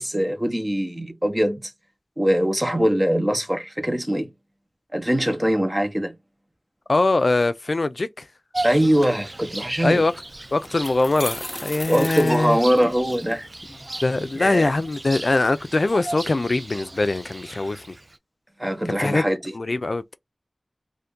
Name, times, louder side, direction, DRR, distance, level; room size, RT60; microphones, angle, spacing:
voice 1, 0.0-1.7 2.2-4.3 4.9-6.1 8.6-10.0 11.9-13.5 14.3-14.7 18.6-19.5, equal, 20° right, 0.8 m, -22 dB
voice 2, 6.9-8.2 9.8-10.1 10.5-12.6 14.0-17.8 19.0-19.2 19.5-20.1, left 2 dB, 75° left, 0.3 m, -22 dB
Bird vocalization bird call bird song, 8.5-18.2, right 2 dB, 40° right, 0.3 m, -36 dB
sound 1, 10.6-13.2, left 1 dB, 25° left, 0.6 m, -35 dB
2.6 x 2.5 x 3.5 m
wide cardioid pair, 50°, 0 cm